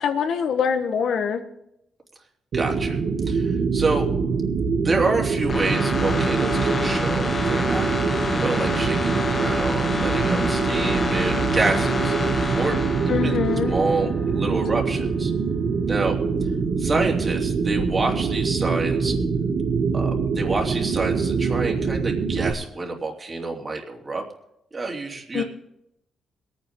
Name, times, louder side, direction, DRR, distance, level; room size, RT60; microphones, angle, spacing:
voice 1, 0.0-1.4 13.1-13.7 25.3-25.4, left 7 dB, 70° left, 8 dB, 1.3 m, -24 dB
voice 2, 2.5-3.0 3.2-4.1 4.8-12.8 13.1-13.4 13.6-15.3 15.9-16.1 16.8-19.2 19.9-24.2 24.7-25.4, right 3 dB, 35° right, 0 dB, 3.3 m, -28 dB
sound 1, 2.5-22.5, right 5 dB, 65° right, 1.8 m, -24 dB
sound 2, 5.5-14.2 14.5-14.6, left 2 dB, 40° left, 2.0 m, -28 dB
23.0 x 9.3 x 3.8 m, 0.82 s
cardioid pair, 75°, 0 cm